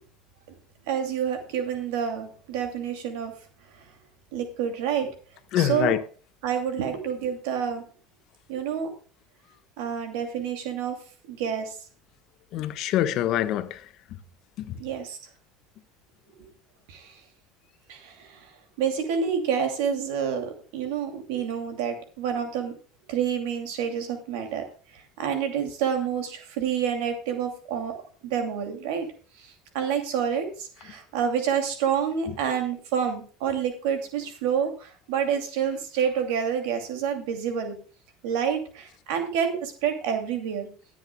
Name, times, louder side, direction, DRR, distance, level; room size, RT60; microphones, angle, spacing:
voice 1, 0.9-3.3 3.7-3.9 4.3-5.1 5.5-6.0 6.4-7.8 8.5-8.9 9.8-11.0 11.3-11.8 14.8-15.2 16.3-16.5 16.9-17.2 17.9-18.5 18.8-22.7 23.1-28.0 28.2-29.1 29.4-37.8 38.2-40.7, right 7 dB, 80° right, 2.5 m, -28 dB
voice 2, 5.5-6.0 12.5-13.9 14.6-14.8 32.3-32.4, left 12 dB, 55° left, 1.2 m, -25 dB
23.5 x 7.9 x 2.3 m
supercardioid pair, 130°, 0 cm